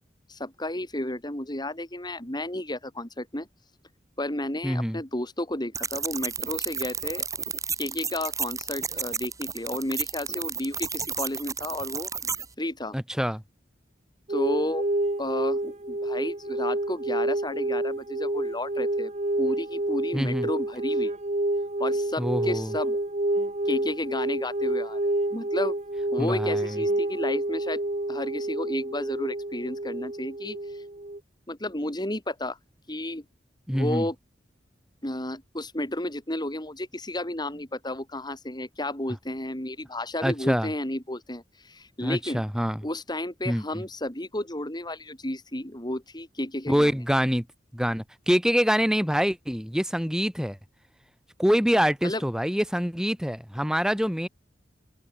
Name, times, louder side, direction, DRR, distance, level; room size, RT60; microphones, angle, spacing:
voice 1, 0.3-3.5 4.2-7.3 7.8-12.1 12.6-13.0 14.3-14.9 15.2-19.1 19.4-21.1 21.8-23.0 23.7-25.8 26.1-27.8 28.1-30.8 31.5-32.6 32.9-33.2 33.7-34.2 35.0-42.4 42.8-46.9 52.0-52.2, left 1 dB, 25° left, 5.3 m, -32 dB
voice 2, 4.6-5.0 12.9-13.4 20.1-20.5 22.2-22.7 26.2-26.8 33.7-34.1 40.2-40.7 42.0-42.8 43.5-43.8 46.7-47.5 47.7-50.6 51.4-54.3, equal, 5° right, 6.9 m, -25 dB
sound 1, 5.7-12.5, right 5 dB, 20° right, 4.5 m, -32 dB
sound 2, 14.3-31.2, right 1 dB, 40° right, 1.6 m, -28 dB
open air
head